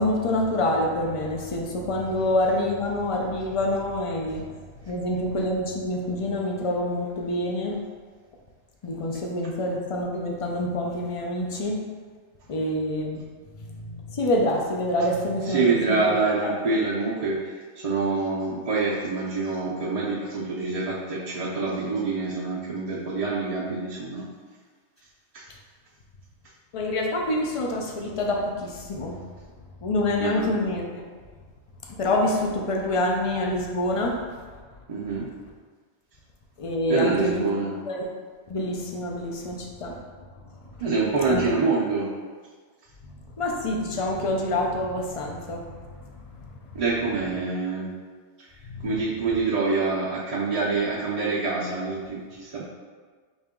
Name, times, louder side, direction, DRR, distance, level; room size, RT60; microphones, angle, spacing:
voice 1, 0.0-4.6 4.8-7.8 8.8-11.8 12.5-13.2 13.5-15.6 15.9-16.0 16.4-16.5 26.7-29.2 29.8-30.8 31.9-34.2 36.6-37.4 37.9-38.1 38.5-40.0 41.3-41.4 43.4-46.8 48.6-49.0, left 1 dB, 45° left, 0 dB, 0.5 m, -27 dB
voice 2, 15.5-24.2 25.3-25.4 30.2-30.5 34.9-35.3 36.9-37.7 40.8-42.1 46.7-47.9 48.8-52.6, right 3 dB, 45° right, -6 dB, 0.5 m, -26 dB
4.2 x 2.9 x 3.6 m, 1.5 s
omnidirectional pair, 1.1 m